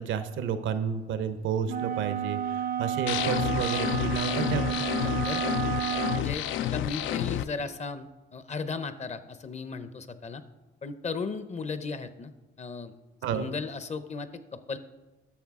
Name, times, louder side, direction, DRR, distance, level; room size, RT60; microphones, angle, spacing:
voice 1, 0.0-4.9 13.2-13.5, right 7 dB, 75° right, 11 dB, 0.7 m, -31 dB
sound 1, 1.7-6.3, right 10 dB, 50° right, 0.4 m, -31 dB
sound 2, 3.1-7.4, left 12 dB, 80° left, 0.4 m, -30 dB
voice 2, 5.0-5.5 6.1-10.4 10.8-12.3 12.6-12.9 13.3-14.8, left 4 dB, 35° left, 12 dB, 0.7 m, -36 dB
11.5 x 6.7 x 3.6 m, 1.1 s
cardioid pair, 90°, 20 cm